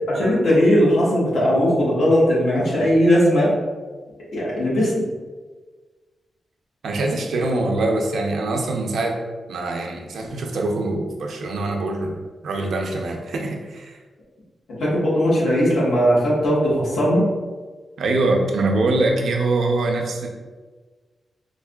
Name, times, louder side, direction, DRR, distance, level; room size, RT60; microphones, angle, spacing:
voice 1, 0.1-3.5 4.3-4.9 14.8-17.2, equal, 80° left, -7 dB, 1.4 m, -18 dB
voice 2, 6.8-9.2 9.5-14.0 18.0-20.3, right 2 dB, 75° right, 1 dB, 0.5 m, -23 dB
4.5 x 2.5 x 2.3 m, 1.3 s
wide cardioid pair, 140°, 0 cm